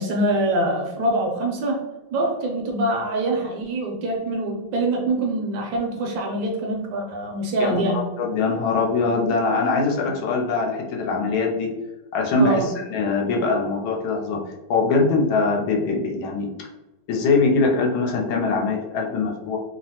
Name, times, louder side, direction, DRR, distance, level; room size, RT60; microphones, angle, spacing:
voice 1, 0.0-1.8 2.1-8.0 12.4-12.7, right 1 dB, 75° right, 0 dB, 1.2 m, -24 dB
voice 2, 7.6-11.7 12.1-14.4 14.7-16.7 17.1-19.6, left 3 dB, 80° left, 1 dB, 1.3 m, -22 dB
3.3 x 2.0 x 2.7 m, 1.1 s
omnidirectional pair, 2.2 m